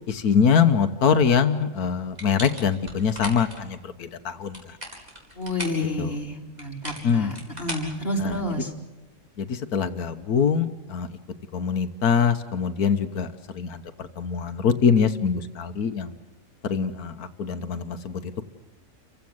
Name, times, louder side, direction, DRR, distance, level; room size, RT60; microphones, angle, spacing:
voice 1, 0.1-4.6 6.0-6.1 7.0-7.3 8.2-8.4 9.4-11.1 11.5-13.3 13.5-16.2 16.6-18.2, left 6 dB, 85° left, 9 dB, 1.6 m, -23 dB
sound 1, 2.2-3.6 4.4-5.9 6.6-8.6, equal, 25° right, 4.8 m, -37 dB
voice 2, 5.4-8.7, left 1 dB, 40° left, 1 dB, 3.6 m, -30 dB
30.0 x 16.0 x 7.9 m, 1.2 s
omnidirectional pair, 1.6 m